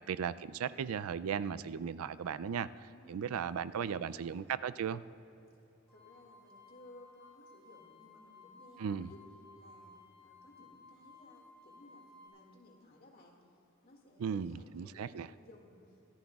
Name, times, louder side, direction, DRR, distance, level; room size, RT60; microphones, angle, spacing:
voice 1, 0.1-2.7 3.1-5.0 8.8-9.1 14.2-15.3, right 7 dB, 85° right, 15 dB, 0.4 m, -36 dB
voice 2, 2.8-4.5 5.9-9.3 9.5-16.0, left 1 dB, 45° left, 0 dB, 2.0 m, -59 dB
sound 1, 5.9-12.3, left 3 dB, 5° left, 3.6 m, -58 dB
24.5 x 14.5 x 2.4 m, 3.0 s
head